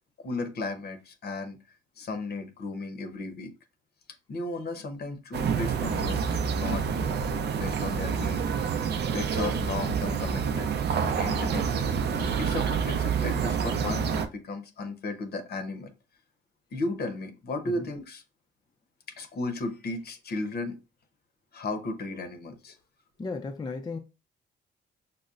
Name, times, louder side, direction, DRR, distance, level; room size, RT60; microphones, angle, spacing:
voice 1, 0.2-1.6 2.0-3.5 4.3-6.8 7.6-8.4 9.1-11.9 12.4-15.9 16.7-18.2 19.2-20.8 21.5-22.8, left 2 dB, 55° left, 0.8 m, -35 dB
sound 1, 5.3-14.3, right 6 dB, 55° right, 0.5 m, -28 dB
voice 2, 23.2-24.0, left 4 dB, 20° left, 0.4 m, -35 dB
5.3 x 2.1 x 2.4 m
cardioid pair, 90°, 20 cm